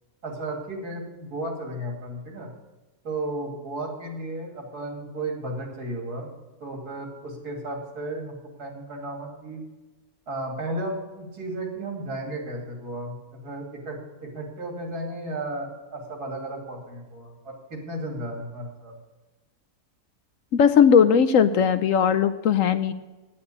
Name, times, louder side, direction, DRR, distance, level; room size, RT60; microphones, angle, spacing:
voice 1, 0.2-2.5 3.0-6.3 6.6-9.6 10.3-18.9, right 1 dB, 80° right, 2 dB, 3.1 m, -34 dB
voice 2, 20.5-22.9, left 7 dB, 65° left, 11 dB, 0.9 m, -18 dB
9.0 x 8.7 x 8.4 m, 1.2 s
omnidirectional pair, 1.6 m